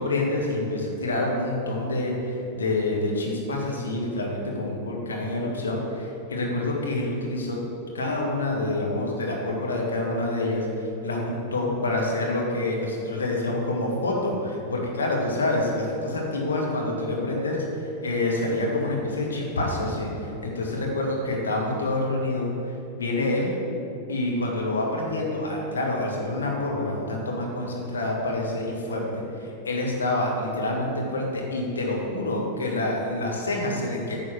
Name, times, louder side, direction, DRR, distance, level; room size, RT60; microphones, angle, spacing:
voice 1, 0.0-7.6 7.9-23.5 24.1-34.2, left 2 dB, 70° left, -1 dB, 1.5 m, -27 dB
9.4 x 4.0 x 5.8 m, 2.8 s
figure-of-eight pair, 90°, 0 cm